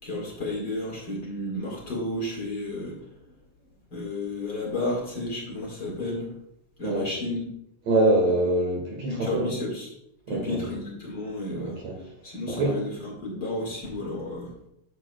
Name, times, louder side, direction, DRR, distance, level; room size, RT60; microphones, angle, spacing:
voice 1, 0.0-3.0 3.9-6.3 6.8-7.4 9.1-9.9 10.3-14.5, left 1 dB, 40° left, -3 dB, 1.4 m, -32 dB
voice 2, 7.9-9.5 10.3-10.7 11.6-11.9 12.6-12.7, right 2 dB, 55° right, -1 dB, 2.1 m, -24 dB
11.0 x 7.2 x 2.3 m, 0.79 s
omnidirectional pair, 4.5 m